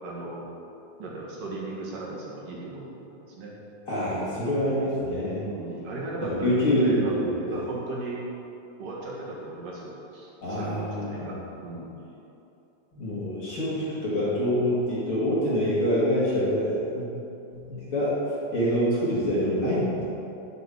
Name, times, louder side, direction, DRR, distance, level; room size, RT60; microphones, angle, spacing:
voice 1, 0.0-0.5 1.0-3.5 5.4-8.2 8.8-11.9, right 2 dB, 70° right, -4 dB, 3.4 m, -37 dB
voice 2, 3.9-5.4 6.3-7.6 10.4-11.3 12.9-17.1 17.5-18.2 18.5-20.0, equal, 40° left, -8 dB, 3.1 m, -26 dB
9.1 x 6.9 x 8.5 m, 2.9 s
omnidirectional pair, 4.0 m